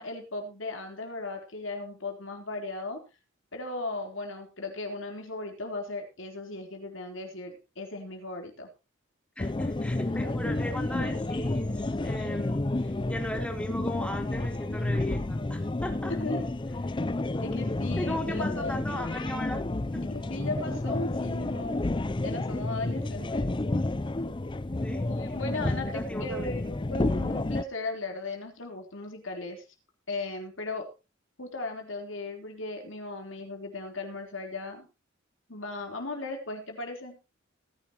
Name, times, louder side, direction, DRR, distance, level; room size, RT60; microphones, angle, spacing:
voice 1, 0.0-3.0 3.5-8.7 16.1-16.9 17.4-18.8 20.0-21.8 22.2-23.5 25.1-29.6 30.1-30.8 31.4-34.9 35.5-37.2, left 2 dB, 85° left, 3 dB, 3.9 m, -37 dB
sound 1, 9.4-27.6, left 2 dB, 25° left, 0.5 m, -30 dB
voice 2, 9.4-16.1 18.0-19.6 19.9-20.0 24.8-25.0 25.9-26.5, left 1 dB, 5° left, 2 dB, 3.5 m, -37 dB
19.0 x 10.5 x 3.0 m, 0.29 s
head